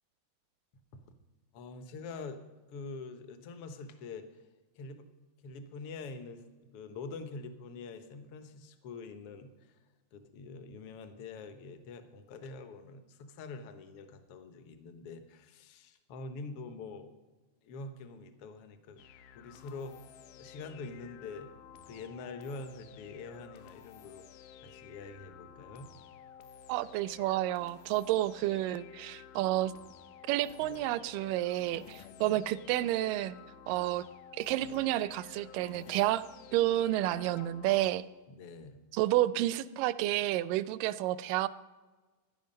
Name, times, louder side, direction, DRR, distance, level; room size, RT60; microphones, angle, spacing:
voice 1, 1.5-2.4 2.7-4.4 4.7-5.1 5.4-6.4 6.7-9.8 10.1-17.1 17.6-20.0 20.4-21.5 21.9-24.3 24.6-25.9 32.2-32.4 38.3-38.8, left 4 dB, 65° left, 9 dB, 1.4 m, -45 dB
sound 1, 19.0-37.9, left 8 dB, 85° left, 2.3 m, -52 dB
voice 2, 26.7-29.7 30.3-33.4 33.7-34.1 34.3-36.3 36.5-38.0 38.9-41.5, right 14 dB, 90° right, 16 dB, 2.2 m, -30 dB
16.0 x 10.5 x 5.4 m, 1.3 s
omnidirectional pair, 3.8 m